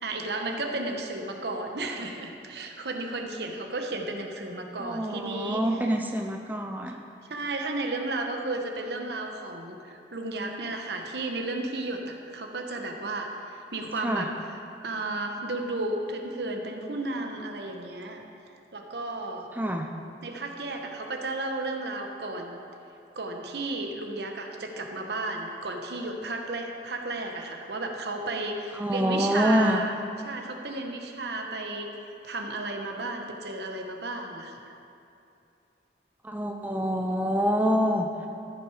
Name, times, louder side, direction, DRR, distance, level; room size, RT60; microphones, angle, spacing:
voice 1, 0.0-5.7 7.3-14.3 14.8-18.2 18.7-19.5 20.2-22.6 23.2-29.9 30.2-31.9 32.2-34.7, right 2 dB, 65° right, 3 dB, 1.0 m, -33 dB
voice 2, 4.8-6.9 14.0-14.3 19.5-19.9 28.7-29.8 36.2-38.1, equal, 10° right, 2 dB, 0.4 m, -26 dB
14.0 x 5.9 x 4.9 m, 2.7 s
head